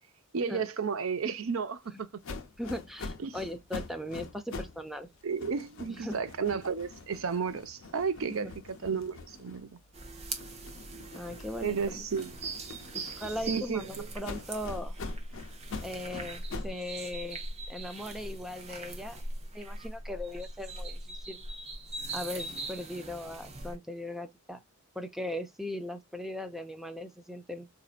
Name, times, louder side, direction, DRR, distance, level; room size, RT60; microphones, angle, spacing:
voice 1, 0.3-2.1 3.2-3.4 5.2-9.8 11.6-12.3 13.5-14.1, right 5 dB, 70° right, 0.5 m, -32 dB
sound 1, 2.2-4.8 5.1-9.9 10.3-13.7 14.2-16.8, left 3 dB, 65° left, 0.6 m, -44 dB
voice 2, 2.6-5.1 5.9-6.2 8.3-8.5 11.1-12.0 12.9-15.0 15.8-19.2 19.5-21.4 22.1-24.6 25.0-27.7, left 1 dB, ahead, 0.4 m, -39 dB
sound 2, 9.9-23.7, right 2 dB, 30° right, 0.7 m, -41 dB
4.1 x 2.7 x 2.4 m
head